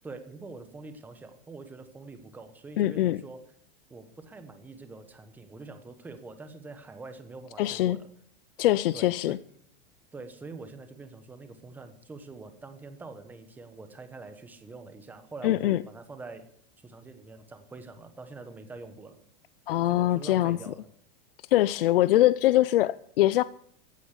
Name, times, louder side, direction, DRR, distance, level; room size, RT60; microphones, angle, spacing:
voice 1, 0.0-3.4 3.9-8.1 8.9-9.4 10.1-16.4 16.8-19.2 19.9-20.9, right 3 dB, 5° right, 1.1 m, -45 dB
voice 2, 2.8-3.2 7.6-8.0 8.6-9.4 15.4-15.8 19.7-20.6 21.5-23.4, left 14 dB, 65° left, 0.5 m, -23 dB
15.0 x 9.3 x 8.1 m
supercardioid pair, 175°, 30 cm